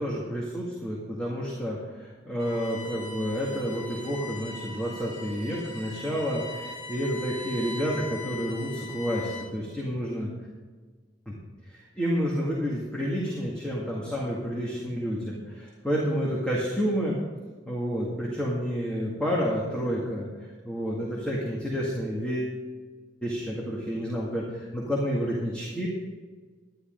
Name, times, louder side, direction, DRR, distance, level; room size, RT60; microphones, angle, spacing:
voice 1, 0.0-10.3 11.3-11.4 12.0-17.2 17.7-20.3 20.6-22.6 23.2-25.9, equal, 5° left, -5 dB, 2.0 m, -29 dB
Bowed string instrument, 2.4-9.6, left 3 dB, 80° left, 2.9 m, -41 dB
11.5 x 11.5 x 3.9 m, 1.5 s
head